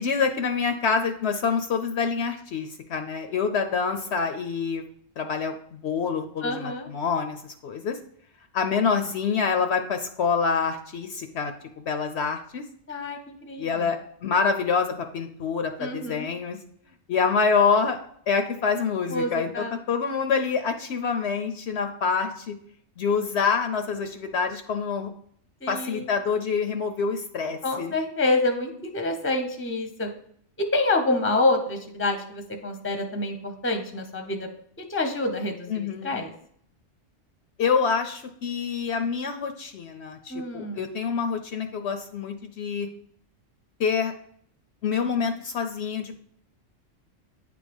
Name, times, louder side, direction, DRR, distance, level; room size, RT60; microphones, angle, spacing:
voice 1, 0.0-4.8 5.2-8.0 8.5-12.6 13.6-16.6 17.1-18.0 18.3-22.5 23.0-25.1 25.7-27.9 35.7-36.2 37.6-42.9 43.8-44.1 44.8-46.3, left 5 dB, 65° left, 7 dB, 0.8 m, -26 dB
voice 2, 6.4-6.9 12.9-13.9 15.8-16.3 19.1-19.7 25.6-26.1 27.6-30.1 30.6-34.5 34.8-36.3 40.3-40.8, left 2 dB, 10° left, 5 dB, 0.7 m, -27 dB
9.4 x 3.4 x 5.2 m, 0.65 s
omnidirectional pair, 1.3 m